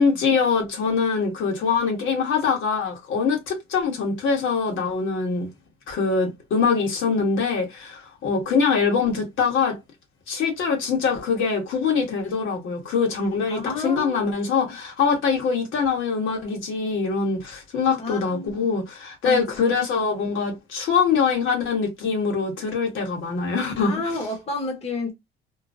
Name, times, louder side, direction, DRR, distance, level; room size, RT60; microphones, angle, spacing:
voice 1, 0.0-5.5 5.9-9.8 10.3-24.2, left 5 dB, 75° left, 1.4 m, -23 dB
voice 2, 13.5-14.4 14.7-14.8 18.0-18.6 19.2-19.4 23.8-25.1, left 3 dB, 30° left, 1.0 m, -31 dB
3.0 x 2.2 x 2.5 m
cardioid pair, 115°, 20 cm